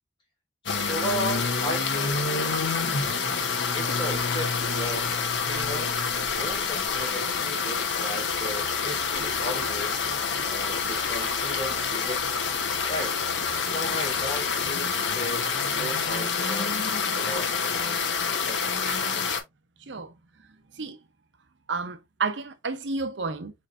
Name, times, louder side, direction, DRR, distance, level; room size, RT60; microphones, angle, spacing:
voice 1, 0.6-2.5 3.7-5.9 6.3-10.0 10.4-12.5 12.9-13.2 13.7-18.2 18.5-18.6, equal, 30° left, 2.6 m, -36 dB
sound 1, 0.7-19.4, left 5 dB, 80° left, 1.0 m, -27 dB
voice 2, 21.7-23.5, right 4 dB, 80° right, 0.8 m, -31 dB
4.5 x 4.5 x 2.5 m
head